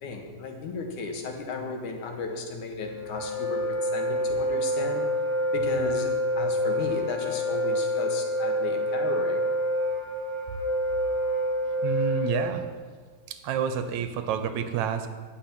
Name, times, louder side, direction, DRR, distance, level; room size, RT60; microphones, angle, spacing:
voice 1, 0.0-5.1 5.5-9.5, left 3 dB, 90° left, 3 dB, 3.0 m, -34 dB
Wind instrument woodwind instrument, 2.8-12.7, equal, 20° right, 3.0 m, -27 dB
voice 2, 11.8-12.6 13.3-15.1, right 8 dB, 75° right, 9 dB, 2.2 m, -29 dB
14.5 x 5.7 x 9.2 m, 1.6 s
omnidirectional pair, 3.4 m